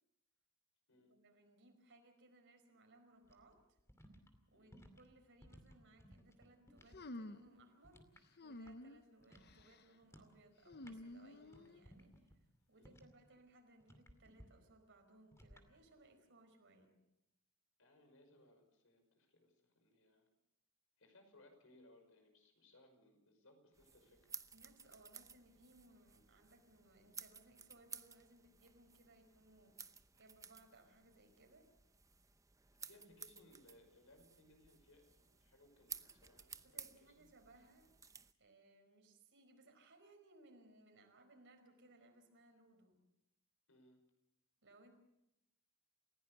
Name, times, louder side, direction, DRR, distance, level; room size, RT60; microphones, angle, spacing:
voice 1, 0.9-3.8 4.5-17.0 24.5-31.7 32.9-33.0 36.6-37.9 38.4-43.0 44.6-44.9, right 2 dB, 55° right, 5 dB, 4.9 m, -66 dB
sound 1, 3.2-7.0 7.3-9.0 9.2-9.6 10.0-10.4 10.6-13.3 13.8-14.5 15.3-15.7, equal, 15° left, 2.4 m, -62 dB
sound 2, 6.9-7.6 8.4-9.0 9.4-9.8 10.7-11.8, left 1 dB, 45° left, 0.9 m, -51 dB
voice 2, 17.8-20.3 21.0-24.4 32.8-37.3 43.7-44.0, left 1 dB, 65° left, 5 dB, 5.7 m, -67 dB
sound 3, 23.7-38.3, right 6 dB, 15° right, 0.8 m, -56 dB
29.5 x 16.0 x 6.8 m, 0.85 s
head